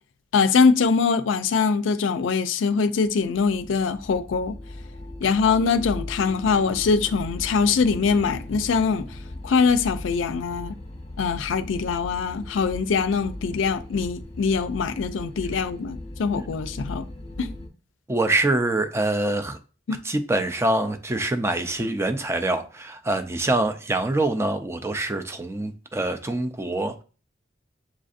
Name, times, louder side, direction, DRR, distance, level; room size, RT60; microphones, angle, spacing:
voice 1, 0.3-4.6 5.2-9.1 9.4-10.7 11.2-17.0 17.4-17.5 19.9-20.0, left 5 dB, 80° left, 0.4 m, -23 dB
sound 1, 3.0-17.7, left 1 dB, 40° left, 0.8 m, -38 dB
voice 2, 18.1-19.6 20.0-27.0, right 2 dB, 15° right, 0.4 m, -25 dB
7.3 x 2.6 x 2.4 m
head